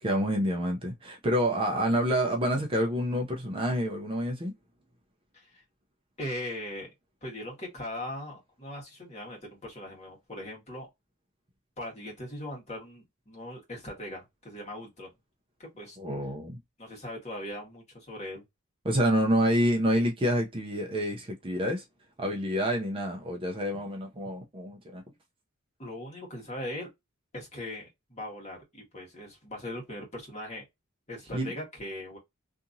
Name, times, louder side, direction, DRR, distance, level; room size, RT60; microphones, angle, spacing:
voice 1, 0.0-4.5 16.0-16.6 18.8-21.8 22.2-25.0 31.3-31.5, equal, 25° right, 0.5 m, -28 dB
voice 2, 6.2-6.9 7.2-10.9 11.8-15.1 15.6-16.0 16.8-18.4 25.8-26.9 27.3-30.7 31.1-32.2, left 1 dB, 30° left, 1.4 m, -40 dB
2.8 x 2.4 x 2.6 m
head